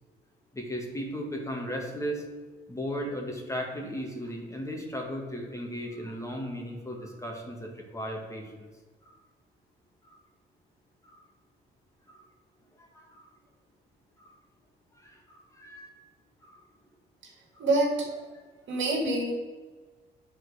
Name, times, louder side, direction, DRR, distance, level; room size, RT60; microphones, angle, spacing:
voice 1, 0.5-2.3 2.7-8.7 9.0-9.1 10.1-10.2 11.0-11.2 12.1-12.3 12.9-13.3 14.2-14.3 14.9-15.9 16.4-16.6 17.5-17.6, equal, 15° left, 0 dB, 1.8 m, -36 dB
voice 2, 17.6-18.2 18.7-19.3, right 2 dB, 70° right, -1 dB, 2.2 m, -27 dB
9.5 x 4.5 x 4.9 m, 1.3 s
cardioid pair, 90°, 20 cm